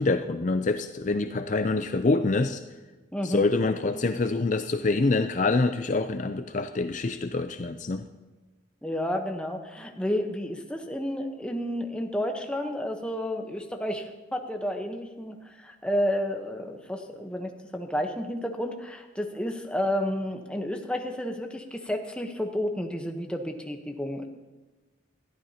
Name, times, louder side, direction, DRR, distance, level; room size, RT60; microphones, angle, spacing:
voice 1, 0.0-2.6 3.2-8.0, left 3 dB, 40° left, 8 dB, 0.4 m, -26 dB
voice 2, 8.8-24.3, equal, 5° left, 3 dB, 0.9 m, -31 dB
20.5 x 14.0 x 2.9 m, 1.2 s
head